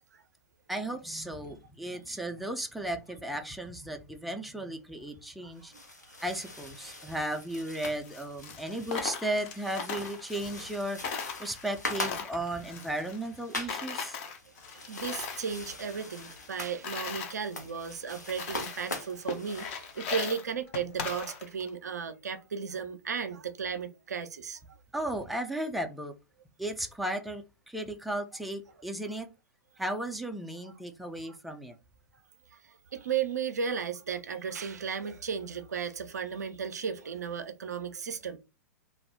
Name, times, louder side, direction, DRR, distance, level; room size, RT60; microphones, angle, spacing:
voice 1, 0.7-5.7 6.2-11.1 11.4-14.2 24.9-26.1 26.6-29.3 29.8-31.8, right 1 dB, ahead, 0.3 m, -35 dB
sound 1, 5.5-20.3, left 2 dB, 85° left, 0.9 m, -43 dB
Coin (dropping), 8.0-10.8 11.0-13.4 13.7-15.5 15.8-17.3 17.9-18.0 18.3-18.9 19.3-21.7, left 6 dB, 45° left, 0.6 m, -39 dB
voice 2, 14.9-24.6 30.6-30.7 32.9-38.4, right 6 dB, 70° right, 0.4 m, -35 dB
2.4 x 2.0 x 3.4 m
figure-of-eight pair, 100°, 9 cm